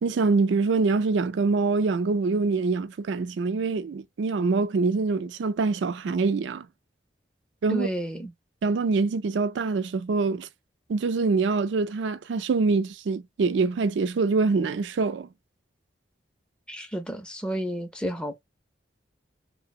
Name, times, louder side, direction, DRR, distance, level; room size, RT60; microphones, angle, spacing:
voice 1, 0.0-6.7 7.6-7.9 8.6-10.5 10.9-15.3, right 4 dB, 90° right, 0.4 m, -25 dB
voice 2, 7.7-8.3 16.7-18.4, right 1 dB, 5° left, 0.4 m, -31 dB
2.8 x 2.0 x 2.3 m
head